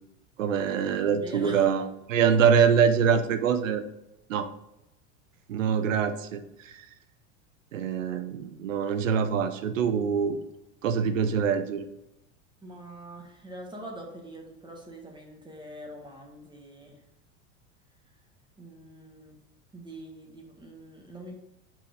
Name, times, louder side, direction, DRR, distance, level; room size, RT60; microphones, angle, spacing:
voice 1, 0.4-3.8 4.3-4.5 5.5-6.9 7.7-10.4 10.8-11.9, right 7 dB, 90° right, 10 dB, 0.8 m, -24 dB
voice 2, 1.2-1.7 12.6-17.0 18.6-19.4 19.7-21.4, right 1 dB, 10° right, 0 dB, 1.6 m, -44 dB
5.7 x 4.9 x 5.1 m, 0.88 s
hypercardioid pair, 105°, 37 cm